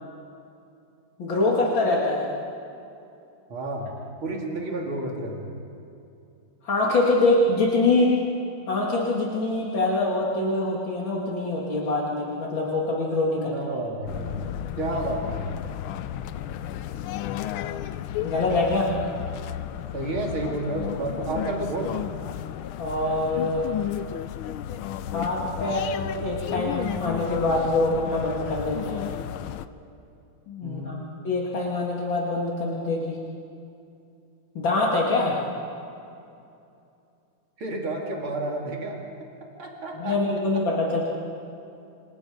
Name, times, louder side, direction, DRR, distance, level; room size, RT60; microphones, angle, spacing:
voice 1, 1.2-2.3 6.6-8.1 8.7-13.6 18.2-18.9 22.8-23.7 25.1-29.1 30.5-30.9 31.2-33.2 34.5-35.4 39.9-41.0, left 2 dB, 65° left, -3 dB, 3.1 m, -24 dB
voice 2, 3.5-3.9 4.2-5.4 13.4-14.5 14.8-15.6 19.9-21.9 30.6-31.1 37.6-39.0 39.6-40.2, right 2 dB, 85° right, -1 dB, 3.6 m, -30 dB
sound 1, 14.1-29.7, left 11 dB, 85° left, 1.6 m, -33 dB
28.5 x 26.0 x 5.2 m, 2.6 s
omnidirectional pair, 2.2 m